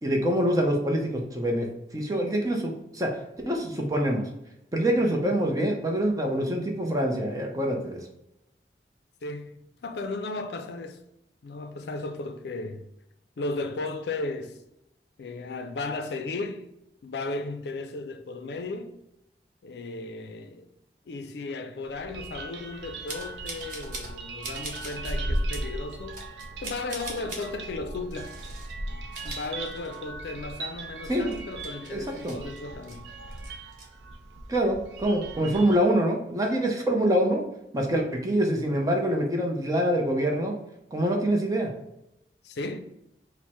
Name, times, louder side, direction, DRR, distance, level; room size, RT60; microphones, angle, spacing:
voice 1, 0.0-1.7 1.9-3.1 3.5-4.2 4.7-8.0 31.1-31.3 31.9-32.4 34.5-37.4 37.7-40.5 40.9-41.7, right 1 dB, 20° right, 0.6 m, -25 dB
voice 2, 9.2-11.0 11.4-12.9 13.4-14.6 15.2-16.7 17.0-19.0 19.6-20.7 21.1-26.2 26.6-28.4 29.2-33.1 42.4-42.8, left 3 dB, 70° left, 0.4 m, -35 dB
sound 1, 21.8-35.8, right 1 dB, 85° right, 0.5 m, -37 dB
sound 2, 23.1-24.2 24.4-25.2 25.5-25.7 26.1-27.5 28.1-28.7 29.0-30.2 30.5-30.6 31.1-33.0 33.3-33.8, right 2 dB, 45° right, 0.8 m, -41 dB
4.4 x 2.1 x 4.4 m
head